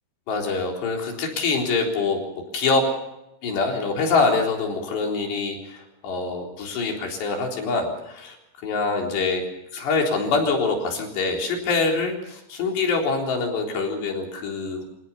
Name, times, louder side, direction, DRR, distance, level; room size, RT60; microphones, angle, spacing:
voice 1, 0.3-2.2 2.5-2.9 3.4-8.4 8.6-9.4 9.7-14.8, left 4 dB, 75° left, 1 dB, 6.0 m, -24 dB
26.5 x 18.0 x 7.1 m, 0.87 s
omnidirectional pair, 5.0 m